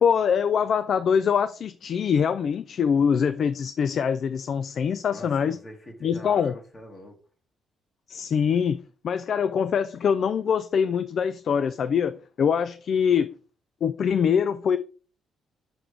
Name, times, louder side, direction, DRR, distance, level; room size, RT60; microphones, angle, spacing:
voice 1, 0.0-5.6 6.0-6.5 8.1-8.8 9.0-13.3 13.8-14.8, left 7 dB, 60° left, 0.4 m, -24 dB
voice 2, 5.0-7.2, left 1 dB, 30° left, 2.0 m, -44 dB
6.1 x 5.9 x 3.2 m
cardioid pair, 90°, 0 cm